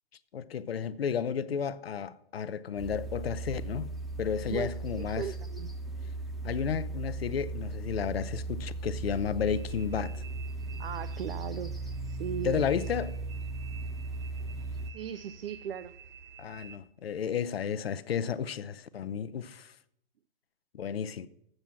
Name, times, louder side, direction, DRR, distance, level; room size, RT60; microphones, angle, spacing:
voice 1, 0.3-3.9 4.2-5.3 6.4-10.2 12.4-13.2 16.4-19.7 20.7-21.3, left 7 dB, 75° left, 0.6 m, -32 dB
sound 1, 2.8-14.9, right 3 dB, ahead, 0.9 m, -37 dB
voice 2, 4.5-5.7 10.8-11.8 12.0-12.6 14.9-15.9, right 9 dB, 70° right, 0.5 m, -37 dB
sound 2, 9.4-16.8, right 6 dB, 55° right, 2.5 m, -51 dB
7.7 x 7.3 x 7.1 m
figure-of-eight pair, 115°, 30 cm